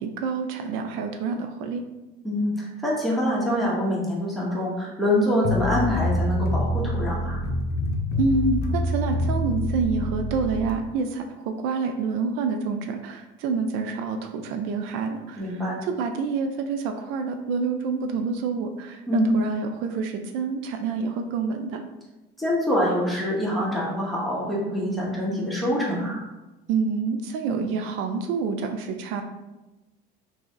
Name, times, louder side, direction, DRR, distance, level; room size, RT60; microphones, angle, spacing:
voice 1, 0.0-1.8 8.2-21.8 26.7-29.2, right 4 dB, 75° right, 5 dB, 0.4 m, -27 dB
voice 2, 2.2-7.4 15.4-15.8 19.1-19.3 22.4-26.2, equal, ahead, -6 dB, 1.0 m, -25 dB
sound 1, 5.4-10.8, left 1 dB, 50° left, 0.6 m, -26 dB
2.9 x 2.7 x 3.7 m, 1.0 s
cardioid pair, 130°, 21 cm